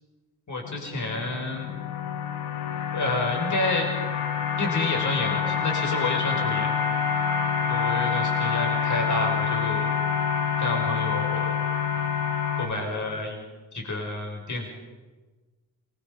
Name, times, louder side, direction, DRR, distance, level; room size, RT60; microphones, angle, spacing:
voice 1, 0.5-1.7 2.9-3.9 4.6-6.8 7.7-9.9 10.6-11.5 12.5-13.4 13.7-14.7, left 2 dB, 35° left, 1 dB, 6.2 m, -29 dB
sound 1, 0.6-12.7, left 7 dB, 75° left, 2.1 m, -27 dB
28.0 x 21.5 x 5.5 m, 1.3 s
hypercardioid pair, 45°, 49 cm